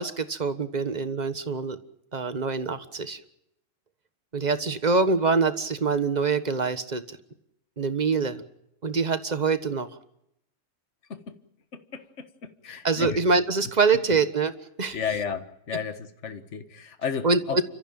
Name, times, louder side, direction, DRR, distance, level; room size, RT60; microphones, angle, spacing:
voice 1, 0.0-1.8 2.1-3.2 4.3-7.2 7.8-8.4 8.8-9.9 12.8-14.5 14.8-15.0 17.2-17.6, right 4 dB, 35° right, 1.5 m, -25 dB
voice 2, 11.7-13.2 14.9-17.6, left 6 dB, 65° left, 1.7 m, -33 dB
29.5 x 14.5 x 8.9 m
omnidirectional pair, 1.3 m